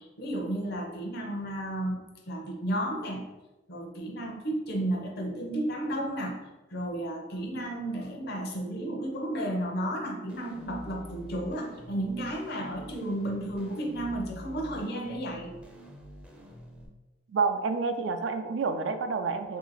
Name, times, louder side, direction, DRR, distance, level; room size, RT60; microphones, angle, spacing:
voice 1, 0.0-2.0 2.3-3.3 3.7-6.4 6.7-15.5, right 1 dB, 60° left, 1 dB, 0.7 m, -33 dB
sound 1, 10.3-16.9, equal, 5° right, 0.5 m, -47 dB
voice 2, 17.3-19.6, right 4 dB, 70° right, 7 dB, 0.4 m, -29 dB
2.9 x 2.8 x 4.0 m, 1.1 s
head